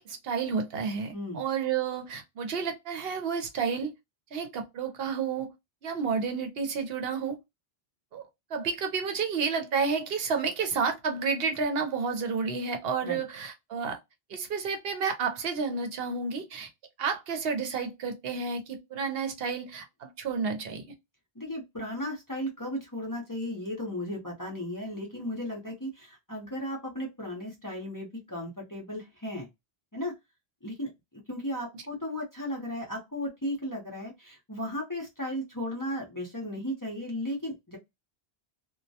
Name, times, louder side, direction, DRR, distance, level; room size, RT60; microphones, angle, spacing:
voice 1, 0.0-3.9 4.3-5.5 5.8-7.4 8.1-8.3 8.5-14.0 14.3-16.7 17.0-20.8 31.7-31.8, right 5 dB, 70° right, 0.8 m, -31 dB
voice 2, 1.1-1.4 13.0-13.2 21.4-29.5 29.9-30.1 30.6-30.9 31.3-37.8, left 1 dB, 20° left, 0.6 m, -35 dB
2.2 x 2.1 x 2.7 m
omnidirectional pair, 1.1 m